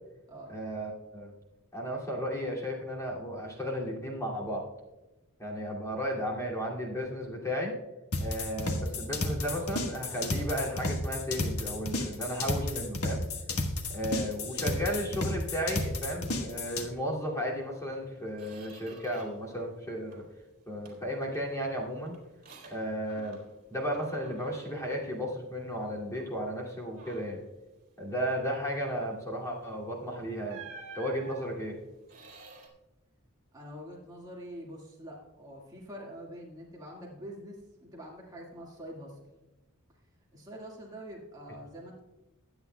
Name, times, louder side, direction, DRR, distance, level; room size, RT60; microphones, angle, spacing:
voice 1, 0.5-1.3 1.7-4.6 5.4-7.7 8.2-13.3 13.9-20.2 20.7-22.2 22.7-23.4 23.7-27.4 28.0-30.6 30.9-31.7, equal, 15° left, -3 dB, 2.5 m, -34 dB
sound 1, 8.1-16.9, left 2 dB, 90° left, 1.4 m, -32 dB
Squeak, 17.6-17.7 18.1-19.5 19.8-20.4 20.8-23.6 23.9-25.8 26.2-26.4 26.8-27.5 29.6-29.8 30.5-32.7, right 4 dB, 45° right, 3.5 m, -51 dB
voice 2, 33.5-39.3 40.3-42.0, equal, 20° right, -3 dB, 1.9 m, -45 dB
22.5 x 9.0 x 2.3 m, 1.1 s
head